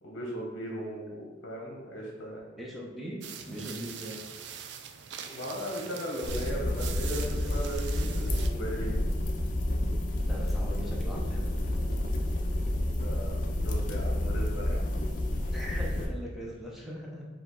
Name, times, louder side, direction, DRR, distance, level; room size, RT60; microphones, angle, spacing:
voice 1, 0.0-2.4 5.2-9.0 12.9-14.8, equal, 70° left, -2 dB, 0.8 m, -37 dB
voice 2, 2.6-3.2 3.5-4.2 10.3-11.5 15.5-17.3, equal, ahead, -4 dB, 0.7 m, -40 dB
sound 1, 3.2-8.5, right 8 dB, 60° right, 0.3 m, -43 dB
sound 2, 6.2-16.1, left 1 dB, 40° left, 0.5 m, -30 dB
4.9 x 2.3 x 3.7 m, 1.3 s
head